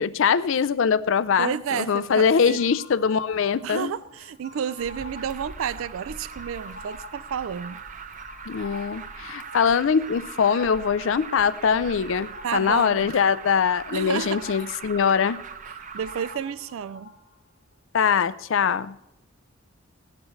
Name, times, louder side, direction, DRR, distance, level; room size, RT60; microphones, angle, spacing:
voice 1, 0.0-3.9 8.5-15.4 17.9-19.0, left 6 dB, 65° left, 0.4 m, -22 dB
voice 2, 1.4-2.6 3.6-7.8 12.4-13.1 13.9-14.4 15.9-17.1, right 7 dB, 75° right, 0.4 m, -31 dB
sound 1, 2.6-17.3, left 3 dB, 55° right, 3.0 m, -46 dB
Alarm, 4.8-16.3, right 6 dB, 35° right, 0.7 m, -41 dB
18.5 x 12.5 x 3.2 m
head